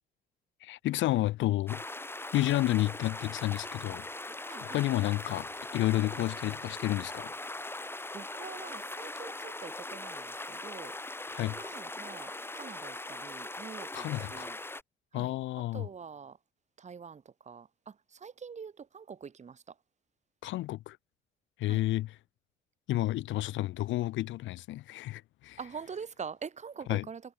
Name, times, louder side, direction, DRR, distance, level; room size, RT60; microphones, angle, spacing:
voice 1, 0.6-1.8 2.3-4.1 4.6-7.3 11.3-11.6 13.9-14.5 15.1-15.9 20.4-21.0 21.6-22.2 22.9-25.6 26.9-27.1, left 16 dB, 70° left, 0.4 m, -31 dB
sound 1, 1.7-14.8, left 2 dB, 10° left, 1.6 m, -40 dB
voice 2, 4.5-4.8 6.1-6.2 8.1-11.0 11.5-14.6 15.1-15.4 15.7-16.4 16.8-19.7 21.7-21.8 25.6-27.2, right 6 dB, 35° right, 1.2 m, -45 dB
cardioid pair, 90°, 20 cm